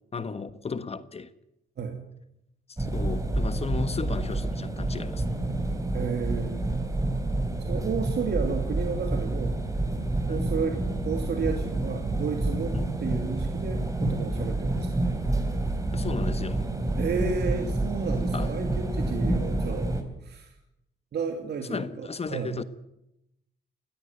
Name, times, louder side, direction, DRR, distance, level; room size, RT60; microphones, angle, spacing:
voice 1, 0.1-1.3 2.9-5.2 10.3-10.4 12.7-12.9 15.9-16.6 18.3-18.5 21.7-22.6, left 5 dB, 30° left, 1.3 m, -34 dB
sound 1, 2.8-20.0, right 2 dB, 15° right, 4.0 m, -28 dB
voice 2, 5.9-6.7 7.7-9.6 10.3-15.1 17.0-19.9 20.2-20.5 21.1-22.6, right 5 dB, 55° right, 2.6 m, -32 dB
21.0 x 13.5 x 9.3 m
cardioid pair, 90°, 20 cm